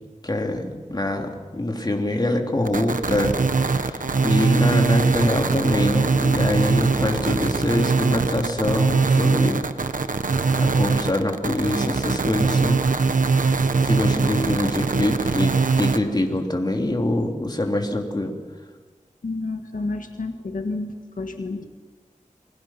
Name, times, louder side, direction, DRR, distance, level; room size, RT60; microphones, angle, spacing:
voice 1, 0.2-9.6 10.5-12.8 13.8-18.3, left 1 dB, 30° left, 2 dB, 3.2 m, -24 dB
sound 1, 2.7-16.0, right 4 dB, 80° right, 1.2 m, -21 dB
voice 2, 19.2-21.7, left 3 dB, 80° left, 5 dB, 1.7 m, -30 dB
29.0 x 22.5 x 5.9 m, 1.4 s
wide cardioid pair, 65°, 13 cm